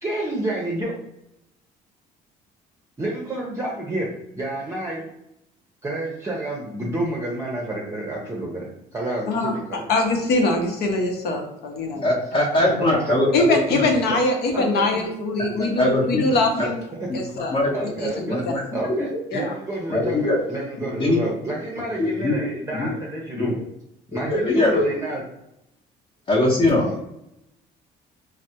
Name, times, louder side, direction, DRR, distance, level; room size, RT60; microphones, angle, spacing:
voice 1, 0.0-0.9 3.0-5.1 5.8-9.8 12.8-13.2 14.5-14.8 15.6-15.7 16.5-16.6 17.0-17.2 17.7-18.4 18.7-23.6 24.1-25.2 26.8-27.0, right 1 dB, 15° right, -3 dB, 0.6 m, -29 dB
voice 2, 9.9-12.1 13.3-16.8 17.1-17.6 18.0-18.5 19.3-19.5, left 2 dB, 75° left, 3 dB, 0.8 m, -23 dB
voice 3, 12.0-13.9 15.8-16.3 16.6-16.7 17.1-17.8 18.3-19.2 19.9-20.4 20.8-21.2 22.0-22.4 22.7-22.9 23.4-23.5 24.2-24.8 26.3-27.0, left 2 dB, 35° left, -5 dB, 0.8 m, -22 dB
3.3 x 2.1 x 2.8 m, 0.83 s
cardioid pair, 110°, 17 cm